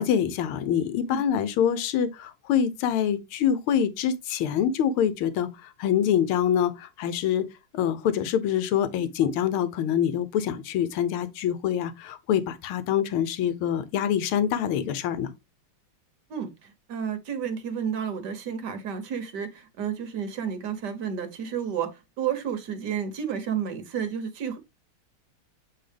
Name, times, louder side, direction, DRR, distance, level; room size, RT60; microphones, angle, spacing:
voice 1, 0.0-7.4 7.7-15.3, left 9 dB, 80° left, 1.6 m, -25 dB
voice 2, 16.3-24.6, right 8 dB, 60° right, 1.4 m, -31 dB
7.8 x 3.6 x 3.3 m
omnidirectional pair, 2.3 m